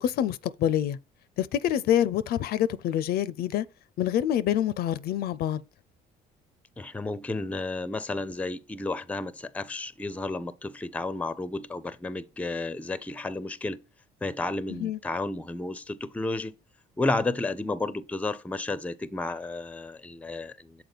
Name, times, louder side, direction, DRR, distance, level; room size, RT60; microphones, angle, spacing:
voice 1, 0.0-1.0 1.4-3.7 4.0-5.6 14.7-15.0, left 11 dB, 65° left, 0.4 m, -26 dB
voice 2, 6.8-13.8 14.2-16.5 17.0-20.8, left 2 dB, 10° left, 0.5 m, -32 dB
6.7 x 4.3 x 4.0 m
cardioid pair, 110°, 17 cm